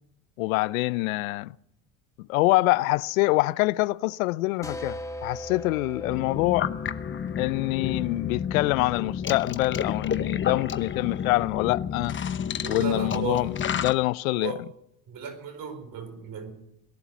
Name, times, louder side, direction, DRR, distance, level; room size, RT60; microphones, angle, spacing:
voice 1, 0.4-1.5 2.3-6.7 7.4-12.2 12.7-14.5, left 21 dB, 85° left, 0.5 m, -25 dB
sound 1, 4.6-10.1, equal, 10° left, 1.9 m, -41 dB
sound 2, 6.0-13.9, left 8 dB, 30° left, 0.9 m, -31 dB
voice 2, 12.6-13.5 14.4-14.6 15.1-16.5, right 6 dB, 55° right, 4.3 m, -34 dB
18.0 x 11.5 x 6.1 m
hypercardioid pair, 80°, 40 cm